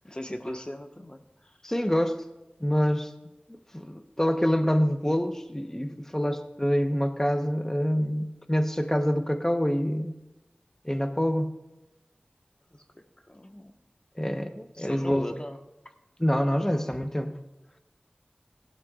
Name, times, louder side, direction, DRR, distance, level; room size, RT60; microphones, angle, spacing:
voice 1, 0.0-1.8 12.7-13.7 14.7-15.6 15.8-15.9 16.6-16.8, left 1 dB, 30° left, 5 dB, 1.3 m, -40 dB
voice 2, 1.6-2.2 2.6-3.1 3.7-10.1 10.8-11.6 14.2-15.3 16.2-17.4, equal, 15° left, 7 dB, 1.0 m, -26 dB
17.5 x 12.0 x 2.5 m, 1.0 s
wide cardioid pair, 40°, 3 cm